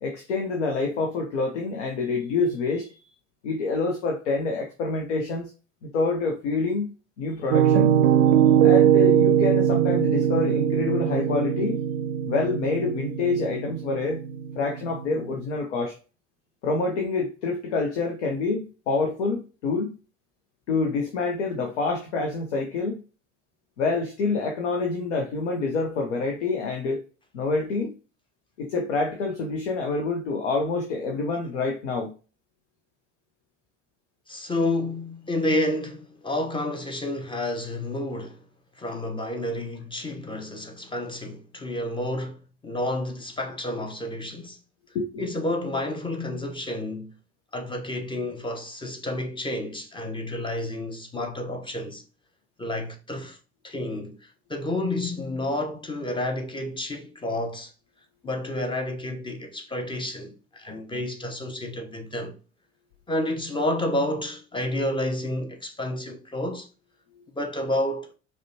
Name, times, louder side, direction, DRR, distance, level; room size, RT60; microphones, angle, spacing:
voice 1, 0.0-3.1 3.4-5.5 5.8-6.9 7.2-8.0 8.6-11.8 12.3-14.2 14.6-15.9 16.6-19.9 20.7-23.0 23.8-27.0 27.3-28.0 28.6-32.1 44.9-45.3, left 3 dB, 75° left, 0.7 m, -27 dB
Piano, 7.5-15.4, right 10 dB, 65° right, 0.5 m, -21 dB
voice 2, 34.3-38.4 38.8-44.6 45.2-47.1 47.5-52.0 52.6-53.4 53.6-57.7 58.2-62.3 63.1-66.7 67.3-68.1, left 1 dB, 15° left, 0.7 m, -30 dB
4.9 x 2.2 x 2.7 m
figure-of-eight pair, 60°, 36 cm